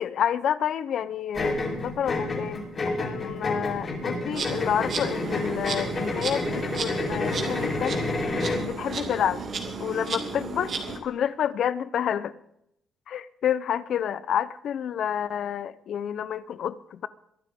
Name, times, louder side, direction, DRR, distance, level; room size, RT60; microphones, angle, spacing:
voice 1, 0.0-8.0 8.5-9.4 9.8-12.3 13.1-17.1, left 9 dB, 65° left, 16 dB, 0.8 m, -29 dB
sound 1, 1.3-8.7, left 2 dB, 40° left, 7.9 m, -29 dB
Insect, 4.3-11.0, right 4 dB, 55° right, 2.8 m, -34 dB
23.5 x 12.0 x 3.8 m, 0.77 s
cardioid pair, 90°, 0 cm